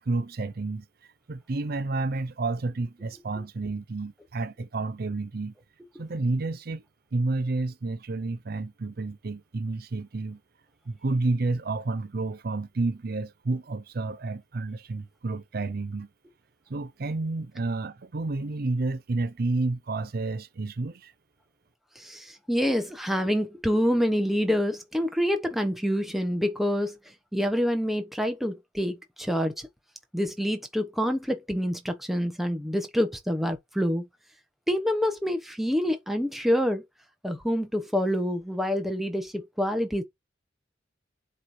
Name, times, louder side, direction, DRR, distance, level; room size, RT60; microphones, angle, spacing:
voice 1, 0.0-5.5 6.0-6.8 7.1-10.4 10.9-16.1 16.7-21.1, right 3 dB, 55° right, 0.6 m, -30 dB
voice 2, 22.0-27.0 27.3-29.7 30.1-34.0 34.7-36.8 37.2-40.0, equal, ahead, 1.0 m, -27 dB
7.4 x 3.2 x 4.2 m
head